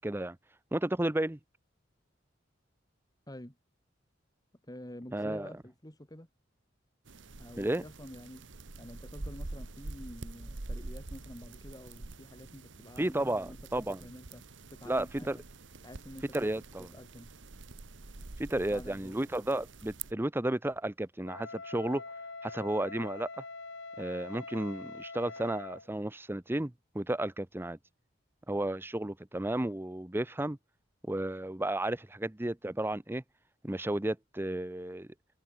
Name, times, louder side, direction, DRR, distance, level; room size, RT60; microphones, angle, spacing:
voice 1, 0.0-0.4 0.7-1.4 5.1-5.5 7.6-7.8 13.0-14.1 14.8-15.4 16.3-16.9 18.4-22.0 22.4-23.3 24.0-27.8 28.5-30.6 31.1-33.2 33.6-35.1, right 1 dB, 10° right, 0.7 m, -33 dB
voice 2, 4.7-6.3 7.4-8.4 8.8-14.4 14.7-15.4 15.8-16.3 16.9-17.3 18.7-19.2, left 1 dB, 20° left, 2.8 m, -48 dB
sound 1, 7.1-20.1, right 3 dB, 70° right, 1.3 m, -46 dB
Wind instrument woodwind instrument, 21.2-25.9, left 3 dB, 70° left, 5.7 m, -44 dB
head